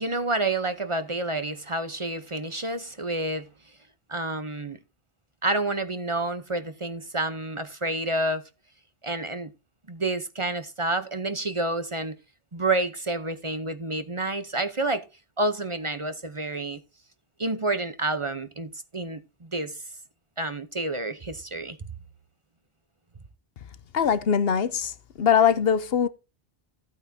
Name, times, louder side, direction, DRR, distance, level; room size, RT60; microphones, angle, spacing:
voice 1, 0.0-3.5 4.1-4.8 5.4-8.4 9.0-9.5 9.9-12.1 12.5-15.0 15.4-16.8 17.4-19.8 20.4-21.8, right 2 dB, 30° right, 0.9 m, -29 dB
voice 2, 23.9-26.1, left 7 dB, 70° left, 1.0 m, -22 dB
15.0 x 8.6 x 2.7 m
omnidirectional pair, 1.0 m